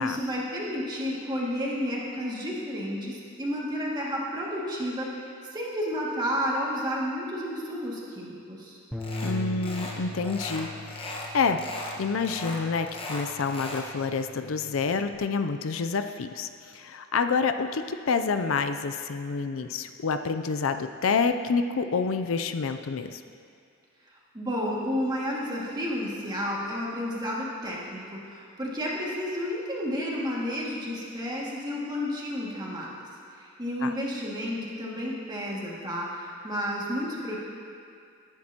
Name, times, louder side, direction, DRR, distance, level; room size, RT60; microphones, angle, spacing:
voice 1, 0.0-8.8 24.3-32.9 33.4-37.4, equal, 20° right, -5 dB, 2.1 m, -31 dB
Bass guitar, 8.9-15.2, left 1 dB, ahead, 0.9 m, -40 dB
sound 1, 9.0-9.3 9.6-10.0 10.2-11.3 11.6-12.0 12.2-13.9, left 2 dB, 30° left, 1.3 m, -37 dB
voice 2, 9.2-10.7 11.0-11.6 12.0-23.2 33.8-33.9, left 5 dB, 75° left, 8 dB, 0.5 m, -28 dB
18.5 x 10.5 x 2.9 m, 2.4 s
head